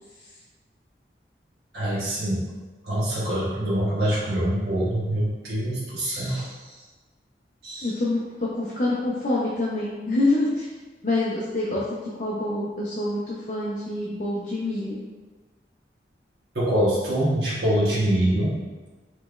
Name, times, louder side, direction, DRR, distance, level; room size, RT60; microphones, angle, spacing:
voice 1, 1.7-2.4 2.8-6.8 7.6-7.9 16.5-18.6, right 1 dB, 65° right, -8 dB, 1.0 m, -24 dB
voice 2, 7.8-10.6 11.0-15.0, left 2 dB, 45° left, -7 dB, 0.5 m, -26 dB
5.0 x 3.0 x 2.3 m, 1.3 s
head